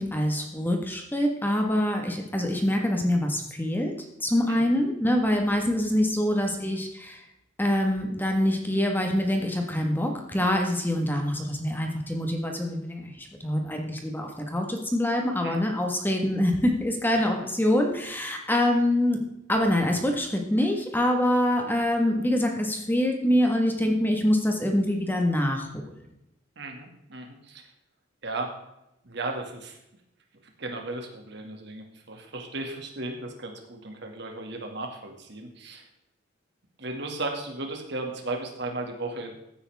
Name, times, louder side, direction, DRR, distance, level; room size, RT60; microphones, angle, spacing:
voice 1, 0.0-3.9 4.2-7.2 7.6-19.2 19.5-26.0, left 1 dB, 10° left, 2 dB, 1.5 m, -25 dB
voice 2, 26.6-27.6 28.2-28.5 29.0-29.8 30.6-35.9 36.8-39.3, right 2 dB, 60° right, 2 dB, 2.2 m, -35 dB
15.5 x 9.0 x 3.6 m, 0.86 s
head